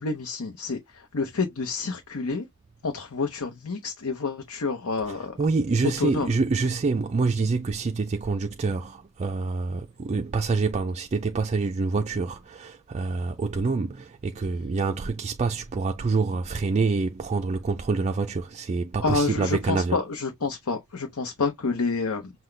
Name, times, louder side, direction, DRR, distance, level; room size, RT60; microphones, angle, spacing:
voice 1, 0.0-2.5 2.8-5.4 6.0-6.3 19.0-22.3, left 4 dB, 90° left, 0.8 m, -28 dB
voice 2, 5.1-20.0, right 4 dB, 30° right, 0.4 m, -26 dB
5.8 x 2.2 x 3.3 m
head